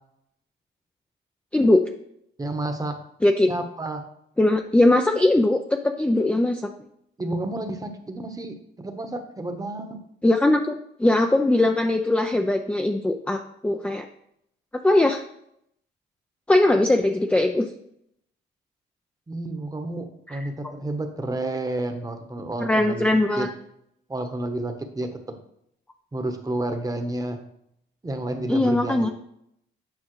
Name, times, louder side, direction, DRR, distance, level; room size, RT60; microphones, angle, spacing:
voice 1, 2.4-3.0 3.5-4.0 7.2-10.0 19.3-23.5 24.1-25.1 26.1-27.4 28.0-29.1, right 2 dB, 20° right, 6 dB, 1.1 m, -30 dB
voice 2, 4.4-6.7 10.2-14.0 14.8-15.2 16.5-17.7 20.3-20.4 22.6-23.5 28.5-29.1, left 1 dB, 5° left, 4 dB, 0.5 m, -20 dB
8.9 x 5.3 x 3.2 m, 0.74 s
cardioid pair, 90°, 20 cm